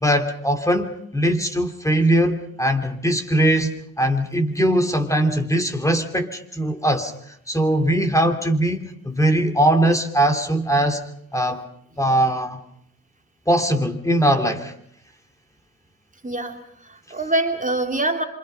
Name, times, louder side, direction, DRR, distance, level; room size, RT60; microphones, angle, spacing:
voice 1, 0.0-11.0 11.3-11.6 12.0-12.6 13.5-14.7, right 1 dB, 5° left, 5 dB, 2.9 m, -21 dB
voice 2, 16.2-18.2, right 2 dB, 20° right, 4 dB, 2.7 m, -25 dB
27.0 x 25.5 x 5.6 m, 0.68 s
hypercardioid pair, 45°, 41 cm